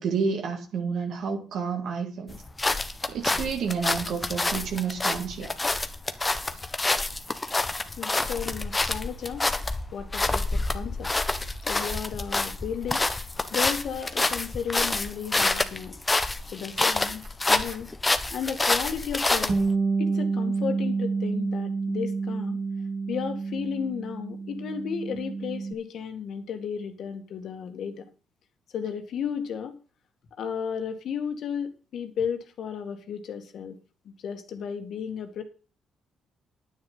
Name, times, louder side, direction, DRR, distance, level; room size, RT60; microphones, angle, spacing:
voice 1, 0.0-2.4 3.1-5.5, right 5 dB, 70° right, 2.2 m, -30 dB
sound 1, 2.3-19.7, left 2 dB, 20° left, 1.3 m, -27 dB
voice 2, 8.0-9.5 9.9-11.1 11.7-13.1 13.5-16.0 16.5-17.2 17.5-17.9 18.3-19.7 20.0-22.6 23.1-28.1 28.7-29.8 30.4-33.8 34.1-35.4, left 7 dB, 70° left, 2.1 m, -33 dB
Bass guitar, 19.5-25.7, right 4 dB, 25° right, 1.3 m, -29 dB
9.7 x 9.7 x 5.6 m
cardioid pair, 90°, 0 cm